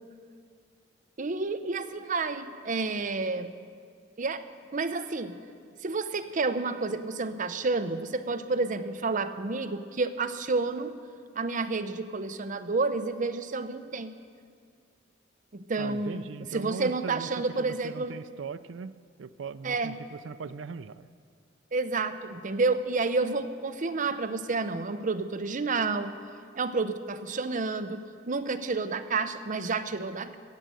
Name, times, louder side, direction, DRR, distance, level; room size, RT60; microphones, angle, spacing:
voice 1, 1.2-3.5 4.2-4.4 4.7-5.4 5.8-10.9 11.4-14.1 15.5-18.2 19.6-20.0 21.7-26.1 26.6-28.0 28.3-30.4, right 3 dB, 45° right, 9 dB, 0.7 m, -30 dB
voice 2, 15.8-17.3 17.6-18.9 19.2-21.1, right 5 dB, 80° right, 13 dB, 0.4 m, -39 dB
17.0 x 7.6 x 7.9 m, 2.1 s
head